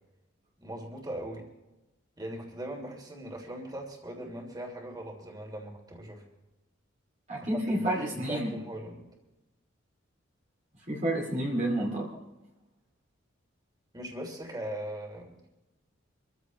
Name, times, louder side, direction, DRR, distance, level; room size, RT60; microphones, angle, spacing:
voice 1, 0.6-1.5 2.2-6.2 7.4-9.0 13.9-15.5, right 1 dB, 20° right, 1 dB, 3.1 m, -40 dB
voice 2, 7.3-8.5 10.9-12.1, right 1 dB, 40° right, -3 dB, 2.6 m, -29 dB
25.0 x 15.0 x 3.2 m, 0.98 s
head